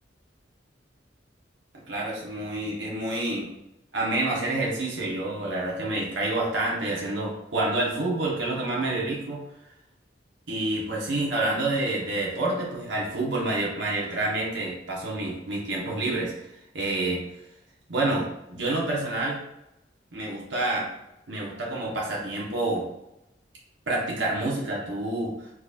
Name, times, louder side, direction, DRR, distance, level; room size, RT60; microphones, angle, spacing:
voice 1, 1.9-3.5 3.9-9.4 10.5-16.5 16.7-17.2 17.9-19.4 20.1-20.9 21.3-22.9 23.9-25.5, right 2 dB, 85° right, -4 dB, 1.2 m, -28 dB
4.6 x 4.3 x 2.5 m, 0.87 s
head